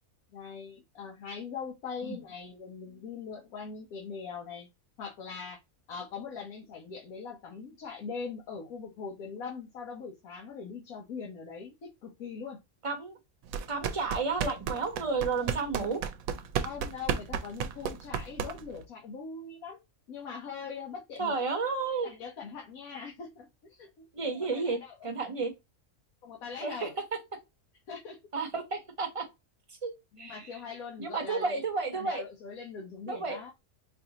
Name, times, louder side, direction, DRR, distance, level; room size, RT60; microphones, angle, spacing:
voice 1, 0.3-4.7 5.0-5.6 5.9-12.6 15.4-15.6 16.6-19.8 20.1-21.3 22.0-24.1 24.3-25.1 26.2-26.9 27.9-28.2 30.1-31.6 31.9-33.5, left 5 dB, 90° left, 1.3 m, -41 dB
voice 2, 12.8-13.2 13.7-16.0 21.2-22.1 24.1-24.8 25.0-25.5 26.6-26.9 28.3-29.2 29.8-30.4 31.0-32.2 33.1-33.4, right 4 dB, 25° right, 0.9 m, -32 dB
sound 1, 13.5-18.8, right 7 dB, 80° right, 1.0 m, -33 dB
4.5 x 2.6 x 2.9 m
omnidirectional pair, 1.4 m